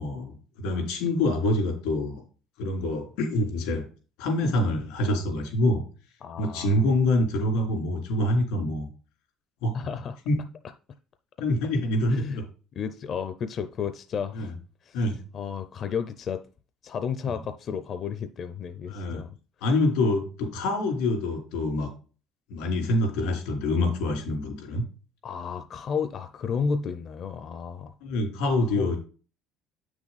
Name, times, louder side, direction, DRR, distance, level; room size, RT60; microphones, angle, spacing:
voice 1, 0.0-2.2 2.6-3.8 4.2-5.8 6.4-8.9 9.6-9.8 10.2-10.3 11.4-12.4 14.3-14.5 14.9-15.2 17.2-17.4 18.9-19.2 19.6-21.9 22.5-24.8 28.0-29.0, left 1 dB, 85° left, 3.3 m, -26 dB
voice 2, 6.2-6.8 9.7-10.2 12.1-12.4 12.8-14.5 14.9-15.0 15.3-16.4 16.8-19.3 25.2-27.9 28.7-28.9, left 6 dB, 35° left, 0.5 m, -32 dB
8.8 x 6.1 x 4.0 m
cardioid pair, 170°, 0 cm